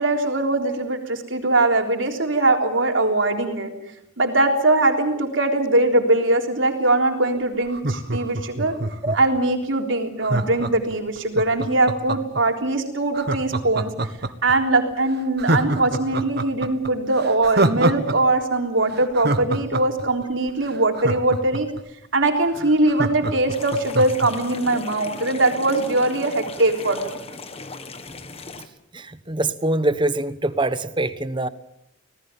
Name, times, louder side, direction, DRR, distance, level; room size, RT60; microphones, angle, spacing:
voice 1, 0.0-3.7 4.2-8.7 9.1-13.9 14.4-21.7 22.1-27.2, right 2 dB, 75° right, 3.7 m, -21 dB
Laughter, 7.7-9.4 10.2-12.4 13.1-14.5 14.9-15.0 15.4-18.2 18.4-18.5 18.9-21.8 22.2-22.3 22.5-24.3 24.7-24.8, right 2 dB, 55° right, 1.5 m, -25 dB
sound 1, 23.5-28.7, left 3 dB, 30° left, 1.6 m, -37 dB
voice 2, 28.9-31.5, right 2 dB, 25° right, 1.0 m, -24 dB
26.0 x 19.0 x 7.4 m
head